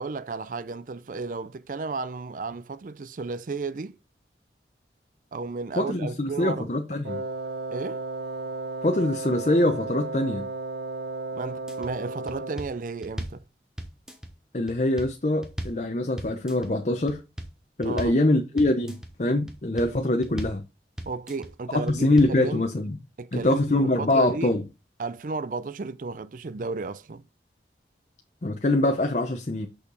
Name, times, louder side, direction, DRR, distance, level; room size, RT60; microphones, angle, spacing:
voice 1, 0.0-4.0 5.3-6.7 7.7-8.0 11.4-13.4 17.8-18.1 21.1-22.6 23.2-24.5 25.0-27.2, right 4 dB, 50° right, 0.4 m, -33 dB
voice 2, 5.8-7.2 8.8-10.5 14.5-17.2 17.8-20.6 21.7-23.0 23.3-24.6 28.4-29.7, left 1 dB, 40° left, 0.7 m, -24 dB
Wind instrument woodwind instrument, 7.0-12.8, right 3 dB, 80° right, 0.8 m, -34 dB
sound 1, 11.5-11.9 12.3-13.4 13.8-14.3 14.7-15.8 16.2-16.7 17.1-17.5 17.8-18.2 18.6-19.1 19.5-19.9 20.2-20.6 21.0-21.5 21.9-22.4, equal, 5° right, 1.0 m, -37 dB
6.5 x 5.6 x 4.0 m
head